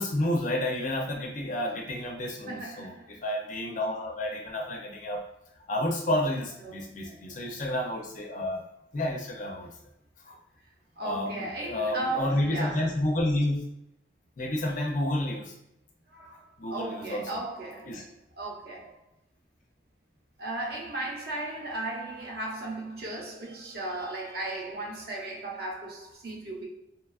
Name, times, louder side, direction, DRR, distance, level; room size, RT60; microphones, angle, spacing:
voice 1, 0.0-5.2 5.7-8.6 8.9-9.7 10.3-10.4 11.0-13.6 14.4-15.5 16.6-17.2 17.9-18.0, left 1 dB, 40° left, 0.4 m, -30 dB
voice 2, 2.5-3.1 6.6-7.2 11.0-12.9 16.1-18.1 18.4-19.0 20.4-26.7, right 2 dB, 50° right, 0.6 m, -36 dB
2.9 x 2.3 x 2.3 m
head